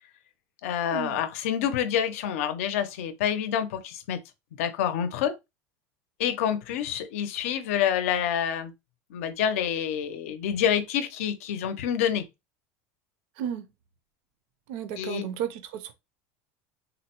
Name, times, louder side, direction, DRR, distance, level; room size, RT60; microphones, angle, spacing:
voice 1, 0.6-4.2 4.5-5.4 6.2-8.7 9.1-12.3 15.0-15.3, left 9 dB, 80° left, 0.5 m, -27 dB
voice 2, 13.4-13.7 14.7-15.9, right 9 dB, 60° right, 0.5 m, -33 dB
3.8 x 2.0 x 2.8 m
supercardioid pair, 170°, 7 cm